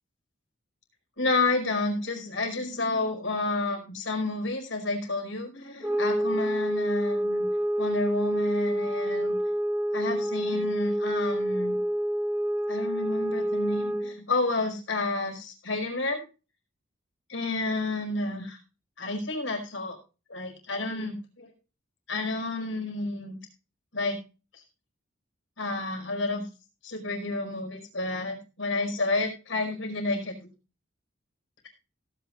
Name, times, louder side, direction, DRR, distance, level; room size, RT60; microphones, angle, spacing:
voice 1, 1.2-7.5 7.8-9.3 9.9-11.8 12.7-16.2 17.3-18.6 19.0-20.0 20.3-21.5 22.1-23.4 23.9-24.2 25.6-26.4 26.8-30.3, left 2 dB, 70° left, 3 dB, 5.1 m, -30 dB
sound 1, 5.8-14.2, right 1 dB, 10° right, 2.6 m, -28 dB
17.5 x 9.6 x 2.4 m, 0.32 s
head